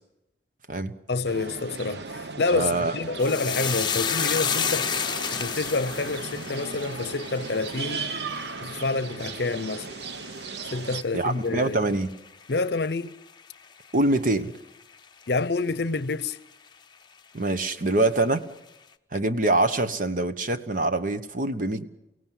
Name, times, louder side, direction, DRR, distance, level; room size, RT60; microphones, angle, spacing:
voice 1, 1.1-4.9 5.3-8.1 8.6-9.9 10.7-11.8 12.5-13.1 15.3-16.4, left 3 dB, 65° left, 0.7 m, -28 dB
sound 1, 1.2-11.0, right 4 dB, 70° right, 0.9 m, -36 dB
voice 2, 2.5-2.9 11.1-12.1 13.9-14.5 17.3-18.5 19.1-21.9, right 2 dB, 50° right, 1.1 m, -24 dB
sound 2, 3.2-11.8 12.1-12.8 13.1-13.3, left 7 dB, 25° left, 0.9 m, -32 dB
29.0 x 17.0 x 7.5 m
head